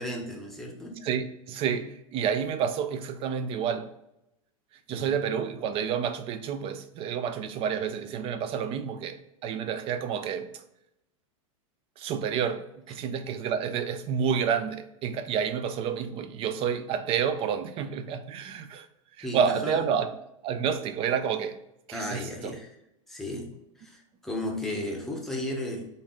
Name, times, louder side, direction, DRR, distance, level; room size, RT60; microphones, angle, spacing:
voice 1, 0.0-1.0 4.9-5.1 19.2-19.8 21.9-22.7 23.1-25.9, left 1 dB, ahead, 0.8 m, -34 dB
voice 2, 1.0-3.9 4.9-10.5 12.0-18.9 19.2-20.1 20.4-21.6 21.9-22.5, right 7 dB, 35° right, 0.4 m, -29 dB
3.8 x 2.5 x 3.6 m
hypercardioid pair, 120°, 17 cm